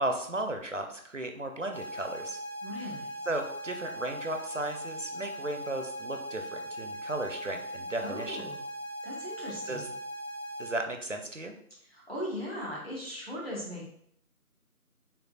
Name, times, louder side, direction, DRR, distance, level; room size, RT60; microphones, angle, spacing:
voice 1, 0.0-2.4 3.3-8.4 9.7-9.9 10.6-11.5, right 1 dB, 55° right, 5 dB, 0.6 m, -35 dB
sound 1, 1.7-10.7, right 1 dB, 65° left, 1.0 m, -39 dB
voice 2, 2.6-3.2 8.0-8.7 9.0-10.0 11.8-13.9, equal, 40° left, -6 dB, 1.4 m, -39 dB
6.8 x 2.4 x 2.4 m, 0.66 s
figure-of-eight pair, 175°, 46 cm